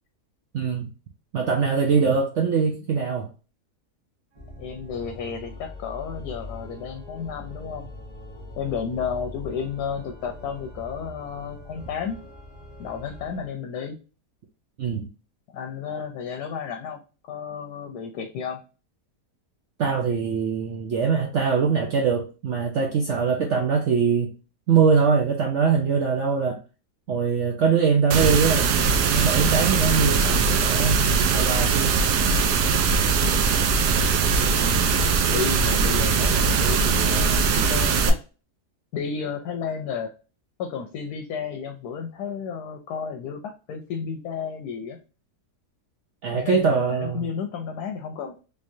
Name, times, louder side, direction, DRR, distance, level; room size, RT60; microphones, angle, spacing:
voice 1, 0.5-0.9 1.3-3.3 14.8-15.1 19.8-24.3 24.7-26.6 27.1-32.0 46.2-47.3, right 5 dB, 65° right, 0.7 m, -22 dB
Organ, 4.3-13.6, left 1 dB, 25° right, 1.3 m, -42 dB
voice 2, 4.6-7.9 8.6-12.2 12.8-14.0 15.5-17.0 17.3-18.6 33.4-33.5 34.4-34.8 35.3-38.2 38.9-40.1 40.6-45.0 46.3-48.4, left 6 dB, 80° left, 1.1 m, -32 dB
sound 1, 28.1-38.1, right 5 dB, 90° right, 1.1 m, -21 dB
3.5 x 3.1 x 2.6 m
omnidirectional pair, 1.6 m